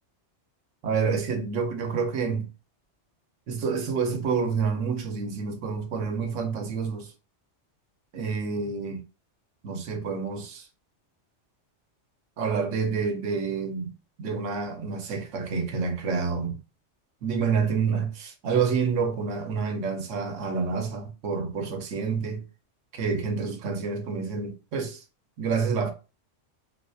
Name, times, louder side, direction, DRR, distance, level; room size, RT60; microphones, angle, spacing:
voice 1, 0.8-2.5 3.5-7.1 8.1-9.0 9.6-10.7 12.4-13.9 14.2-16.6 17.2-22.4 22.9-25.0 25.4-25.9, right 5 dB, 90° right, 1.1 m, -28 dB
4.1 x 2.4 x 2.5 m
omnidirectional pair, 1.2 m